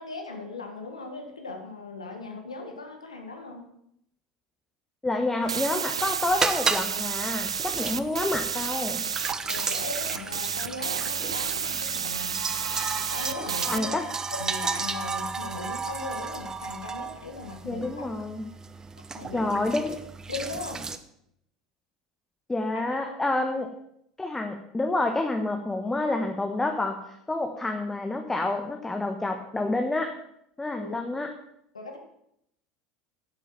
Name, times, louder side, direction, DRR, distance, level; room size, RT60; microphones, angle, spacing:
voice 1, 0.0-3.7 9.4-12.3 12.9-14.0 14.3-18.1 19.1-19.6 20.3-20.8 22.7-23.2 30.8-31.0 31.7-32.0, left 3 dB, 85° left, 3 dB, 1.5 m, -38 dB
voice 2, 5.0-9.0 13.6-14.0 17.7-18.4 19.3-20.0 22.5-23.7 24.2-30.1 30.6-31.3, left 2 dB, 10° left, 4 dB, 1.2 m, -28 dB
sound 1, 5.4-21.0, right 4 dB, 20° right, 0.9 m, -34 dB
sound 2, 5.5-13.8, right 7 dB, 85° right, 0.4 m, -31 dB
10.5 x 8.3 x 5.8 m, 0.75 s
figure-of-eight pair, 75°, 3 cm